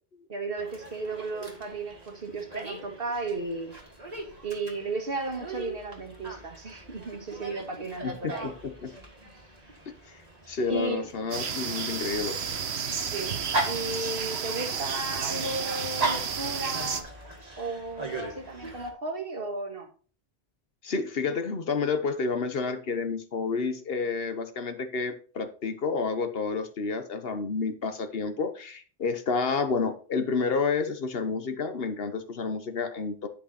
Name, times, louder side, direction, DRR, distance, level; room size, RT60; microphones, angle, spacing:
voice 1, 0.3-3.7 4.4-8.5 10.7-11.1 13.1-13.4 13.7-17.1 17.6-19.9, right 3 dB, 60° right, 1.8 m, -34 dB
Dog, 0.6-18.9, right 2 dB, 40° right, 2.0 m, -39 dB
voice 2, 8.0-8.9 9.9-10.2 10.5-12.4 20.8-33.3, left 4 dB, 65° left, 1.2 m, -30 dB
sound 1, 11.3-17.0, right 6 dB, 80° right, 1.2 m, -32 dB
10.5 x 5.8 x 4.1 m
omnidirectional pair, 1.1 m